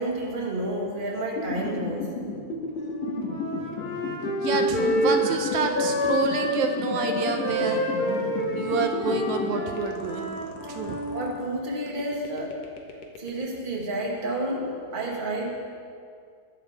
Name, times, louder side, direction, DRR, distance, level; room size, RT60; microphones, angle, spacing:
voice 1, 0.0-2.1 11.1-12.6 13.2-15.6, right 1 dB, 20° right, -2 dB, 1.8 m, -30 dB
sound 1, 1.4-11.5 11.9-13.6, left 4 dB, 65° left, 2.4 m, -33 dB
Wind instrument woodwind instrument, 2.7-6.6 6.9-11.2, equal, 25° left, 1.2 m, -28 dB
voice 2, 4.4-7.8 8.6-10.4 10.7-11.0, right 4 dB, 80° right, 5 dB, 2.2 m, -28 dB
22.0 x 11.5 x 3.6 m, 2.3 s
omnidirectional pair, 3.3 m